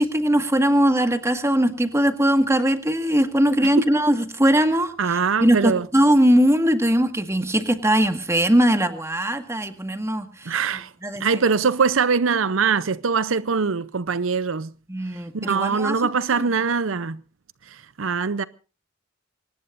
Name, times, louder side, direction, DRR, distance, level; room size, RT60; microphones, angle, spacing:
voice 1, 0.0-10.5 11.0-11.2 14.9-16.0 16.4-16.5, equal, 15° right, 1.8 m, -20 dB
voice 2, 5.0-5.9 10.5-10.9 11.2-14.7 15.3-17.2 18.0-18.4, right 5 dB, 80° right, 0.7 m, -22 dB
24.5 x 19.5 x 2.6 m
head